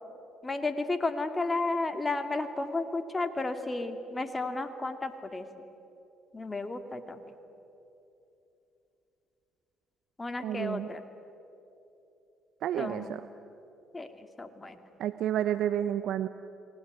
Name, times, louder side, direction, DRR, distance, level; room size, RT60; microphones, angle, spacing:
voice 1, 0.4-5.4 6.3-7.2 10.2-11.0 12.8-13.2 13.9-14.1 14.4-14.8, left 3 dB, 25° left, 8 dB, 2.4 m, -32 dB
voice 2, 10.4-10.9 12.6-13.3 15.0-16.3, right 11 dB, 65° right, 12 dB, 0.8 m, -30 dB
30.0 x 20.0 x 9.9 m, 2.9 s
hypercardioid pair, 55°, 0 cm